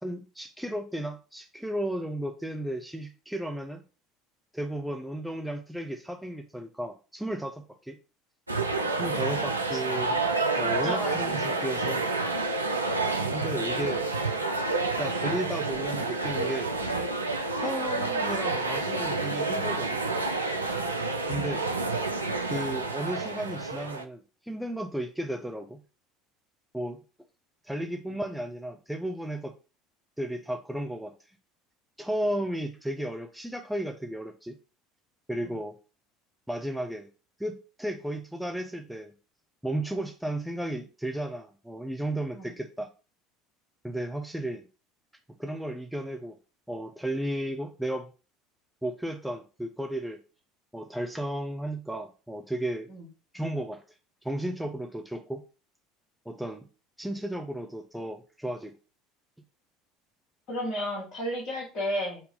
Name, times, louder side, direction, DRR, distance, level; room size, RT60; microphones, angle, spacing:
voice 1, 0.0-3.8 4.5-8.0 9.0-10.2 10.6-12.0 13.3-14.1 15.0-16.7 17.5-20.0 21.3-21.7 22.5-25.8 26.7-27.0 27.6-29.5 30.2-31.1 32.0-34.6 35.3-35.8 36.5-37.1 37.4-39.1 39.6-42.9 43.8-44.7 45.4-46.4 46.7-48.1 48.8-50.2 50.7-52.9 53.3-53.8 54.2-55.4 56.3-56.7 57.0-58.8, right 1 dB, ahead, 2 dB, 0.6 m, -34 dB
sound 1, 8.5-24.1, right 3 dB, 85° right, 0.4 m, -29 dB
voice 2, 10.6-11.6 35.4-35.5 42.4-42.5 52.9-53.0 60.5-62.2, equal, 45° left, -1 dB, 2.2 m, -33 dB
4.1 x 2.7 x 3.8 m, 0.34 s
figure-of-eight pair, 65°, 0 cm